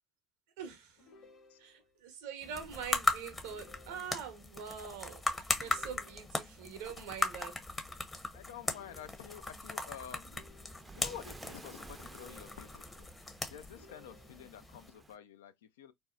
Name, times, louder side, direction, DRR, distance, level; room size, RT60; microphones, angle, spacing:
voice 1, 0.6-1.0 1.6-7.6, right 7 dB, 80° right, 0.7 m, -44 dB
sound 1, 1.0-2.0 3.4-4.5 5.6-6.6 8.6-9.6 10.2-11.2 12.0-13.1 13.7-14.7, left 2 dB, 55° left, 1.2 m, -60 dB
voice 2, 1.1-1.6 8.3-10.5 10.9-13.1 13.5-15.9, left 9 dB, 85° left, 0.3 m, -50 dB
sound 2, 2.4-14.9, left 2 dB, 20° left, 0.7 m, -38 dB
Waves surf, 9.9-15.2, right 3 dB, 20° right, 0.4 m, -54 dB
2.7 x 2.1 x 2.3 m
hypercardioid pair, 70°, 0 cm